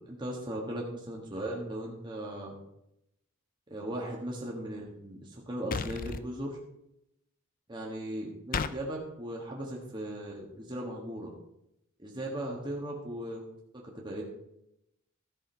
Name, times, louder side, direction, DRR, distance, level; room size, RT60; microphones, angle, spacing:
voice 1, 0.1-2.6 3.7-6.6 7.7-11.3 12.0-13.4 13.9-14.2, right 1 dB, 20° right, -3 dB, 1.6 m, -37 dB
sound 1, 5.7-6.2 8.5-8.8, left 5 dB, 40° left, 0.4 m, -32 dB
14.0 x 6.3 x 4.5 m, 0.82 s
head